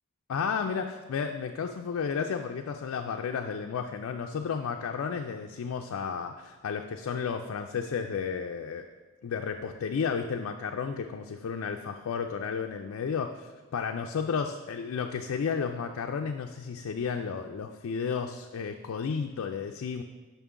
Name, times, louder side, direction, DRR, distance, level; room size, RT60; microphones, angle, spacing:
voice 1, 0.3-8.9 9.2-20.0, left 6 dB, 75° left, 4 dB, 0.4 m, -32 dB
7.0 x 5.8 x 3.7 m, 1.4 s
head